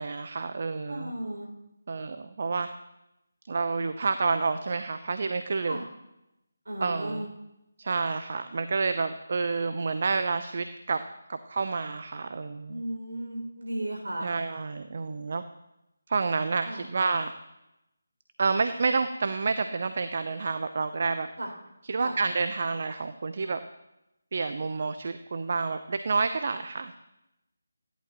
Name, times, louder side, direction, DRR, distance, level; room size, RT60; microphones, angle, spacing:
voice 1, 0.0-1.1 1.9-2.7 3.5-5.8 6.8-7.2 7.8-11.0 11.3-12.8 14.2-15.4 16.1-17.3 18.4-21.3 21.8-23.6 24.3-26.9, right 4 dB, 45° right, 10 dB, 0.7 m, -29 dB
voice 2, 0.9-1.5 5.7-5.8 6.6-7.3 12.7-14.3 16.6-16.9 21.4-21.5 22.0-22.1, right 1 dB, 65° right, 0 dB, 6.0 m, -35 dB
28.0 x 11.5 x 3.0 m, 0.90 s
figure-of-eight pair, 155°, 0 cm